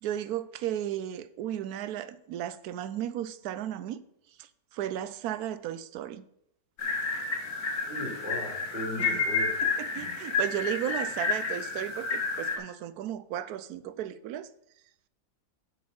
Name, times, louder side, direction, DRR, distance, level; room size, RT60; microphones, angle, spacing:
voice 1, 0.0-4.0 4.4-6.2 9.0-9.2 9.6-14.5, right 11 dB, 85° right, 1.1 m, -35 dB
sound 1, 6.8-12.6, left 4 dB, 75° left, 2.1 m, -30 dB
voice 2, 7.9-9.6, left 1 dB, 10° right, 3.8 m, -37 dB
8.1 x 6.3 x 5.3 m
omnidirectional pair, 1.6 m